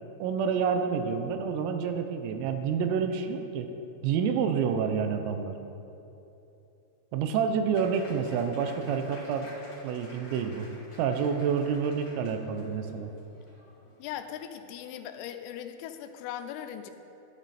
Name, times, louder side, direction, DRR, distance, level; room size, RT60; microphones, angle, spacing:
voice 1, 0.2-3.7 4.0-5.6 7.1-10.7 11.0-13.1, right 6 dB, 85° right, 6 dB, 3.4 m, -28 dB
Applause, 7.7-14.1, left 1 dB, 35° left, 0.5 m, -51 dB
voice 2, 14.0-16.9, left 10 dB, 85° left, 7 dB, 3.4 m, -39 dB
13.5 x 11.5 x 4.2 m, 2.9 s
omnidirectional pair, 5.9 m